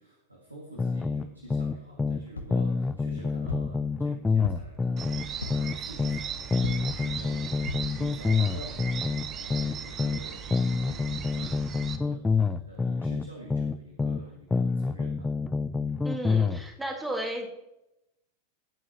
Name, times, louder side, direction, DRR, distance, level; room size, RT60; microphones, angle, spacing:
voice 1, 0.0-15.3, right 1 dB, 85° right, -2 dB, 2.0 m, -48 dB
sound 1, 0.8-2.2 2.5-6.2 6.5-10.2 10.5-14.2 14.5-16.6, left 4 dB, 10° left, 0.4 m, -27 dB
sound 2, 2.4-2.7 3.5-3.8 4.4-4.8 5.4-5.7 6.6-7.0 7.7-8.0 8.5-8.6 8.9-9.0, left 3 dB, 75° left, 1.1 m, -37 dB
sound 3, 5.0-12.0, right 8 dB, 30° right, 1.0 m, -38 dB
voice 2, 16.0-17.5, right 1 dB, 10° right, 0 dB, 2.0 m, -33 dB
19.5 x 7.2 x 2.9 m, 0.87 s
figure-of-eight pair, 90°, 0 cm